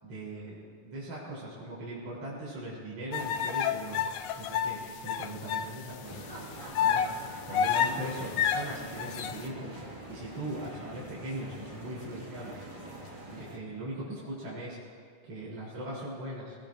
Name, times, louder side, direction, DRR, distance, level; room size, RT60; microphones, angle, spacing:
voice 1, 0.0-4.1 4.3-6.2 6.7-7.0 7.5-9.8 10.1-12.6 13.2-14.8 15.2-16.6, right 1 dB, 50° right, -7 dB, 4.7 m, -40 dB
sound 1, 3.1-5.7 6.1-6.2 6.8-9.4, left 8 dB, 80° left, 2.1 m, -29 dB
sound 2, 6.0-13.6, right 1 dB, 20° right, 1.8 m, -44 dB
28.0 x 18.0 x 2.6 m, 2.2 s
omnidirectional pair, 3.6 m